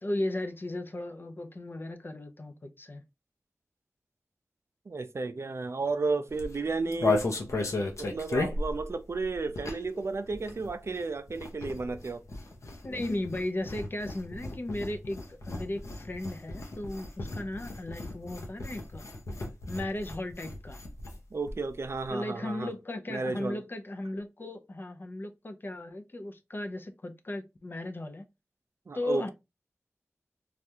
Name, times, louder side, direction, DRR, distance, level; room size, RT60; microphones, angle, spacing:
voice 1, 0.0-3.0 12.8-19.0 19.7-20.8 22.1-28.2 28.9-29.3, left 1 dB, 45° left, 0.6 m, -36 dB
voice 2, 4.9-7.2 8.0-12.2 21.3-22.7 23.1-23.6 28.9-29.3, right 3 dB, 60° right, 0.4 m, -33 dB
sound 1, 6.3-10.0 10.3-21.2 21.5-21.6 21.8-22.1, left 2 dB, 75° left, 0.8 m, -35 dB
3.4 x 2.4 x 2.7 m
wide cardioid pair, 50°, 5 cm